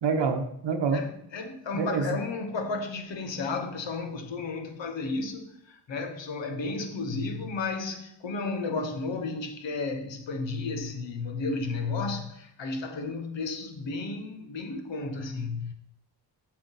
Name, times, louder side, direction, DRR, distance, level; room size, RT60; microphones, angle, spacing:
voice 1, 0.0-1.1 1.7-2.2, right 5 dB, 80° right, 0.9 m, -27 dB
voice 2, 0.9-15.7, left 3 dB, 90° left, 1.0 m, -33 dB
7.6 x 4.4 x 4.0 m
cardioid pair, 50°, 43 cm